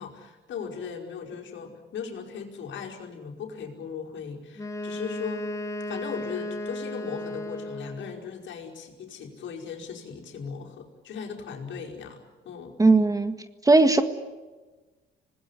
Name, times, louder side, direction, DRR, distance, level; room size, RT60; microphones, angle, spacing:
voice 1, 0.0-5.5 5.9-12.7, left 6 dB, 70° left, 0 dB, 5.3 m, -38 dB
Wind instrument woodwind instrument, 4.6-8.3, left 1 dB, 15° left, 4.2 m, -35 dB
voice 2, 12.8-13.4 13.6-14.0, right 3 dB, 15° right, 9 dB, 1.8 m, -18 dB
26.5 x 19.5 x 10.0 m, 1.3 s
cardioid pair, 90°, 20 cm